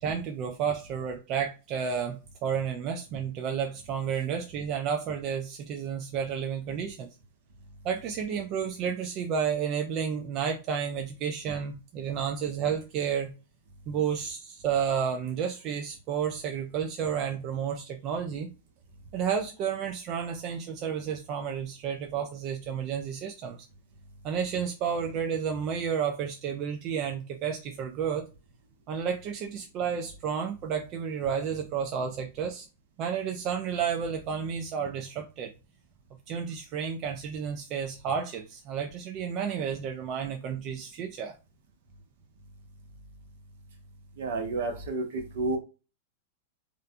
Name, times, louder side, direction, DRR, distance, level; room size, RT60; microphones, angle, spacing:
voice 1, 0.0-7.1 7.8-13.3 13.9-18.5 19.1-23.6 24.2-28.3 28.9-32.7 33.0-35.5 36.3-41.3, right 7 dB, 40° right, 0.4 m, -31 dB
voice 2, 44.2-45.0 45.3-45.6, right 3 dB, 70° right, 0.8 m, -30 dB
2.5 x 2.2 x 2.6 m
hypercardioid pair, 120°, 0 cm